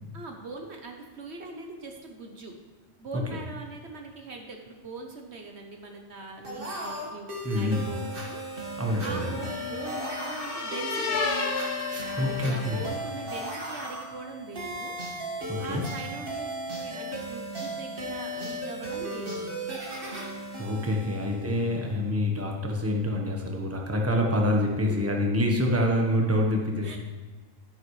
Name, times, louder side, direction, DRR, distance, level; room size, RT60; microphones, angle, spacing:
voice 1, 0.1-2.5 3.0-8.4 9.0-11.2 12.1-14.9 15.6-19.7 21.1-21.2 24.7-25.3 26.8-27.0, right 3 dB, 60° right, 2 dB, 1.2 m, -41 dB
sound 1, 6.4-21.9, equal, 45° right, 1.9 m, -36 dB
voice 2, 7.4-7.9 8.8-9.4 11.9-12.9 15.5-15.8 20.3-27.0, left 1 dB, 10° right, 0 dB, 1.1 m, -27 dB
sound 2, 7.6-13.1, left 3 dB, 55° left, 1.3 m, -34 dB
11.0 x 9.7 x 3.3 m, 1.3 s
omnidirectional pair, 1.3 m